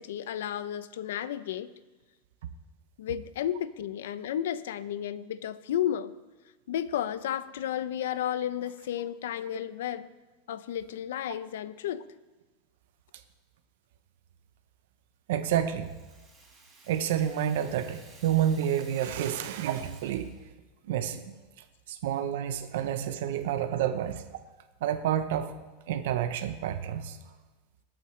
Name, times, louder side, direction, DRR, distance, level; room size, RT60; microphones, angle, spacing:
voice 1, 0.0-1.7 3.0-6.1 6.7-10.1 10.5-12.1, left 10 dB, 90° left, 15 dB, 0.6 m, -32 dB
voice 2, 15.3-15.9 16.9-20.3 20.8-21.3 21.9-24.2 24.8-25.6 25.9-27.2, right 10 dB, 70° right, 9 dB, 0.8 m, -29 dB
Rattle (instrument), 15.4-20.5, right 3 dB, 20° right, 3.9 m, -55 dB
22.0 x 8.9 x 3.3 m, 1.2 s
supercardioid pair, 160°, 0 cm